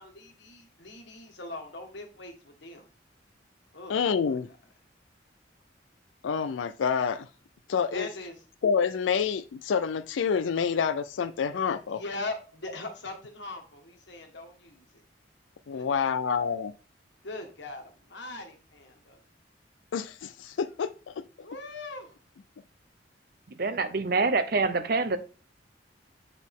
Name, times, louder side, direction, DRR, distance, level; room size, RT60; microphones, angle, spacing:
voice 1, 0.0-2.8 3.7-3.9 4.3-4.4 7.9-8.4 11.9-15.0 15.7-16.4 17.2-19.2 21.4-22.2, left 2 dB, 70° left, 1.6 m, -41 dB
voice 2, 3.9-4.5 6.2-7.3 7.7-8.1 8.6-12.0 15.7-16.7 19.9-21.2, left 6 dB, 90° left, 0.4 m, -28 dB
voice 3, 23.5-25.2, right 3 dB, 55° right, 0.7 m, -26 dB
8.1 x 4.1 x 3.7 m
head